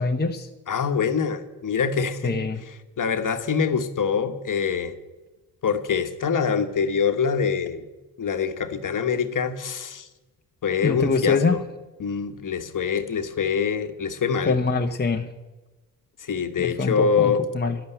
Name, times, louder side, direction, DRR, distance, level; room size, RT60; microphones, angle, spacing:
voice 1, 0.0-0.5 2.2-2.6 10.8-11.6 14.5-15.3 16.6-17.8, left 4 dB, 20° left, 3 dB, 1.0 m, -24 dB
voice 2, 0.7-2.3 3.0-4.9 5.6-7.9 8.2-10.1 10.6-11.6 12.0-14.6 16.2-17.4, left 6 dB, 40° left, 7 dB, 1.4 m, -24 dB
11.0 x 10.5 x 8.1 m, 1.1 s
hypercardioid pair, 50°, 46 cm